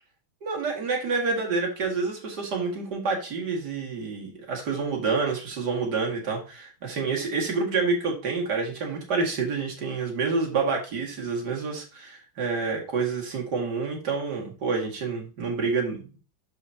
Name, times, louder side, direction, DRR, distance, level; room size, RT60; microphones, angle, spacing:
voice 1, 0.4-16.2, right 4 dB, 55° right, 0 dB, 2.5 m, -28 dB
12.0 x 4.5 x 2.8 m, 0.34 s
omnidirectional pair, 2.2 m